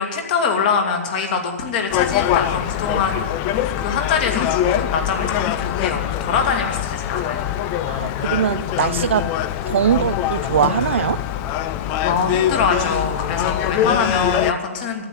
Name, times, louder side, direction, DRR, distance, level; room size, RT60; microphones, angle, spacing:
voice 1, 0.0-7.5 12.0-15.1, left 5 dB, 40° left, 2.2 m, -23 dB
Gull seagull, 1.9-14.5, left 11 dB, 25° left, 0.4 m, -23 dB
voice 2, 7.9-9.3 9.7-11.2, right 9 dB, 55° right, 0.4 m, -21 dB
12.0 x 8.8 x 9.0 m
hypercardioid pair, 145°, 8 cm